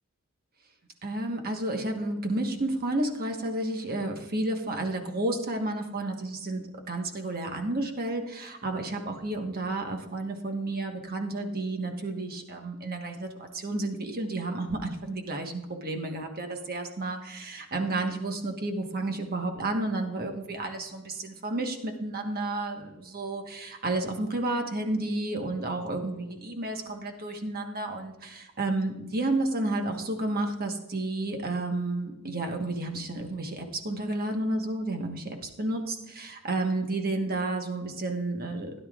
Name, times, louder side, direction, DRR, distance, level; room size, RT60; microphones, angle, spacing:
voice 1, 1.0-6.6 6.9-38.7, right 2 dB, 45° right, 4 dB, 1.3 m, -31 dB
16.5 x 10.5 x 2.4 m, 1.0 s
head